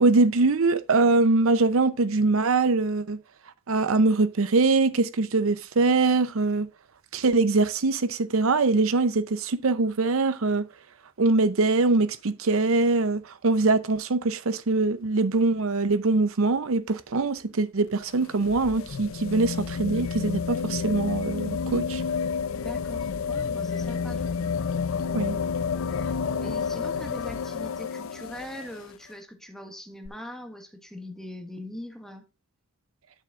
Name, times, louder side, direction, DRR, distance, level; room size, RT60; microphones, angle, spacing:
voice 1, 0.0-3.2 3.7-6.7 7.1-10.6 11.2-22.0 25.1-25.4, right 3 dB, 70° right, 0.6 m, -23 dB
sound 1, 17.9-28.9 30.1-30.2, left 6 dB, 65° left, 0.5 m, -30 dB
voice 2, 22.6-24.5 25.9-26.1 26.4-32.2, left 1 dB, ahead, 1.4 m, -41 dB
11.5 x 6.9 x 2.5 m
head